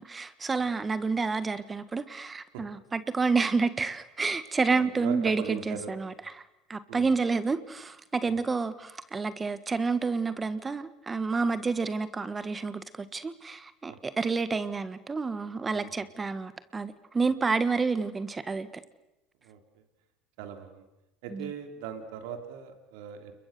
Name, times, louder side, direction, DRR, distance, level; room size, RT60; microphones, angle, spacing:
voice 1, 0.0-6.4 6.7-18.7 21.3-21.5, right 4 dB, 20° right, 1.4 m, -29 dB
voice 2, 4.7-5.9 6.9-7.1 8.3-8.4 11.4-11.5 13.9-14.0 15.7-15.9 19.4-19.8 20.4-20.8 21.2-23.3, right 8 dB, 75° right, 3.3 m, -40 dB
29.5 x 22.0 x 6.8 m
supercardioid pair, 95°, 0 cm